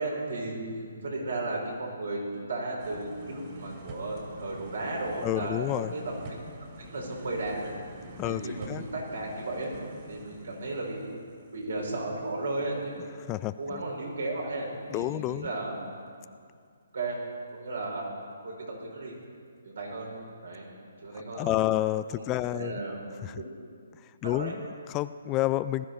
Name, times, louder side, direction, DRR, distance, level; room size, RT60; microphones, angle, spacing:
voice 1, 0.0-2.2 2.5-6.0 6.3-6.4 6.8-7.7 8.2-9.7 10.1-11.0 11.5-12.9 13.6-15.7 16.9-17.2 17.5-18.1 18.4-19.2 19.6-20.1 20.4-20.6 21.0-21.7 22.1-22.2 22.5-23.0 23.3-23.6 24.2-24.5, right 2 dB, 70° right, -2 dB, 4.8 m, -34 dB
sound 1, 2.8-12.6 13.0-13.1, right 1 dB, 35° right, 3.0 m, -46 dB
voice 2, 5.2-5.9 8.2-8.8 13.3-13.8 14.9-15.5 21.1-22.8 23.2-23.4 24.0-25.9, left 15 dB, 25° left, 14 dB, 0.3 m, -30 dB
19.5 x 12.5 x 4.8 m, 2.2 s
figure-of-eight pair, 140°, 0 cm